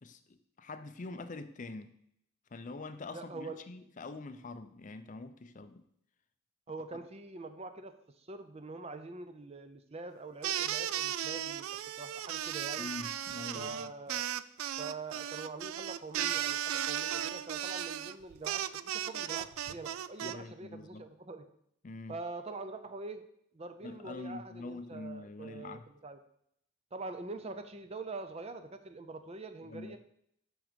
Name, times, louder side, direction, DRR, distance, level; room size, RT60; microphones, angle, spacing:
voice 1, 0.0-1.9 2.5-5.8 12.8-13.9 20.2-21.1 21.8-22.2 23.8-25.8 29.6-30.0, left 3 dB, 40° left, 10 dB, 0.5 m, -45 dB
voice 2, 3.1-3.6 6.7-11.7 12.0-12.9 13.5-14.3 14.8-21.5 22.1-23.2 23.5-26.2 26.9-30.0, right 3 dB, 30° right, 9 dB, 0.5 m, -44 dB
sound 1, 10.4-20.3, right 11 dB, 80° right, 0.3 m, -36 dB
6.2 x 6.2 x 5.1 m, 0.71 s
head